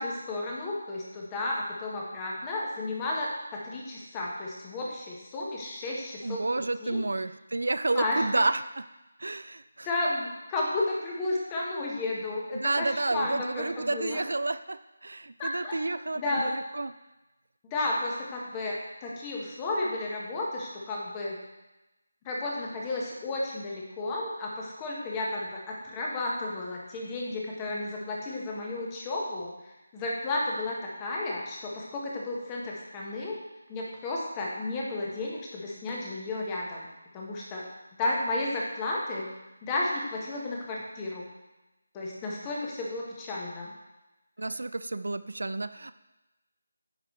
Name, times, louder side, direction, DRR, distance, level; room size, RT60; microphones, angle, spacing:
voice 1, 0.0-6.4 6.8-7.0 7.9-8.4 9.8-14.2 15.4-15.8 16.2-16.5 17.6-21.4 22.2-29.5 29.9-33.4 33.7-36.9 37.1-37.6 38.0-39.3 39.6-41.3 41.9-43.7, left 2 dB, 15° left, -3 dB, 1.2 m, -33 dB
voice 2, 6.2-8.9 9.2-9.9 12.5-16.9 44.4-45.9, right 2 dB, 65° right, 13 dB, 0.3 m, -30 dB
9.2 x 4.8 x 3.1 m, 1.0 s
figure-of-eight pair, 155°, 0 cm